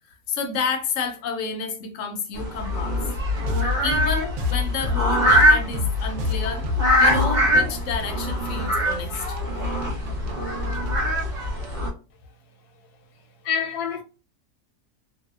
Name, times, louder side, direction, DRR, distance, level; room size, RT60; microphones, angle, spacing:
voice 1, 0.3-3.0 3.8-6.7 7.0-9.4, left 5 dB, 65° left, 0.8 m, -30 dB
sound 1, 2.4-11.9, equal, 35° right, 0.9 m, -23 dB
sound 2, 3.2-11.9, left 5 dB, 70° right, 1.0 m, -29 dB
voice 2, 12.7-14.0, left 8 dB, 85° left, 1.2 m, -30 dB
2.7 x 2.0 x 2.3 m
omnidirectional pair, 1.7 m